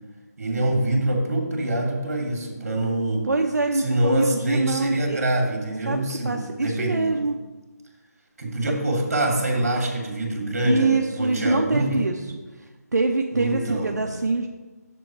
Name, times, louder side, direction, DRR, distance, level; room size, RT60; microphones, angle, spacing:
voice 1, 0.4-3.2 3.7-7.2 8.4-12.1 13.3-13.9, right 1 dB, 55° right, 1 dB, 2.3 m, -25 dB
voice 2, 3.2-5.2 5.9-7.3 10.6-12.2 12.6-14.5, right 3 dB, 85° right, 3 dB, 0.7 m, -24 dB
7.0 x 6.9 x 4.7 m, 1.2 s
figure-of-eight pair, 165°, 9 cm